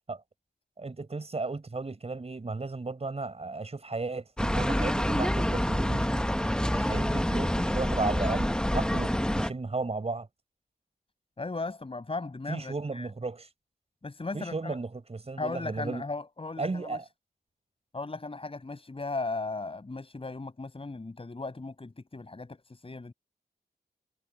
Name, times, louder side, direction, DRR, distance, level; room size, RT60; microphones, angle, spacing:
voice 1, 0.8-6.2 6.7-10.3 12.5-13.5 14.3-16.0 16.6-17.0, right 3 dB, 35° right, 5.5 m, -34 dB
sound 1, 4.4-9.5, equal, 5° left, 1.3 m, -27 dB
voice 2, 11.4-13.1 14.0-14.8 15.4-17.0 17.9-23.1, left 3 dB, 35° left, 6.6 m, -37 dB
cardioid pair, 70°, 17 cm